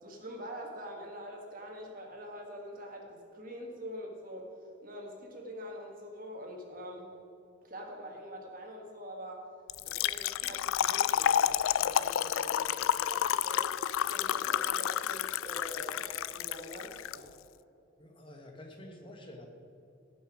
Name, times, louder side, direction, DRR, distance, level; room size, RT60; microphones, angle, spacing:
voice 1, 0.0-4.5 4.8-7.1 7.6-9.4 9.8-13.7 14.1-17.4, equal, 45° right, 1 dB, 1.6 m, -44 dB
Trickle dribble / Fill (with liquid), 9.7-17.2, left 10 dB, 85° left, 0.3 m, -30 dB
voice 2, 18.0-19.5, left 1 dB, 25° left, 2 dB, 1.3 m, -49 dB
17.5 x 6.0 x 4.9 m, 2.7 s
head